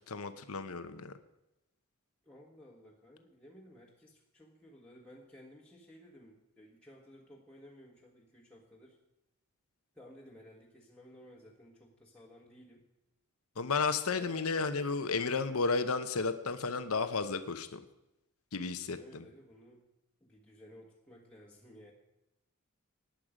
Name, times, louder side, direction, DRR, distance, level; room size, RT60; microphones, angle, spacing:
voice 1, 0.1-1.1 13.6-17.8 18.5-19.2, left 4 dB, 80° left, 10 dB, 0.9 m, -33 dB
voice 2, 2.2-9.0 9.9-12.8 14.1-14.5 18.9-19.8 20.2-21.9, equal, 5° left, -4 dB, 1.5 m, -56 dB
17.5 x 10.5 x 5.1 m, 0.92 s
head